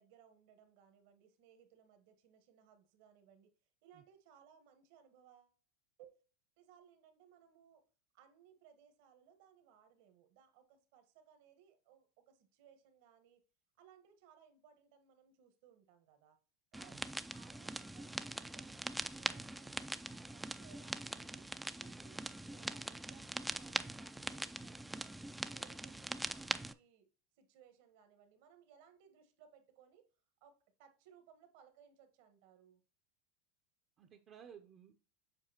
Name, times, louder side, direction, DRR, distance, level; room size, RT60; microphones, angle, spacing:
voice 1, 0.0-3.5 3.8-5.6 6.0-6.1 6.6-7.8 8.1-13.4 13.8-16.4 16.7-21.5 21.7-25.2 25.5-27.1 27.4-30.0 30.4-32.8, right 8 dB, 65° right, 1.3 m, -65 dB
sound 1, 16.7-26.7, right 1 dB, 5° right, 0.4 m, -42 dB
voice 2, 34.0-34.9, right 8 dB, 40° right, 0.7 m, -57 dB
7.5 x 4.8 x 2.9 m
hypercardioid pair, 110°, 0 cm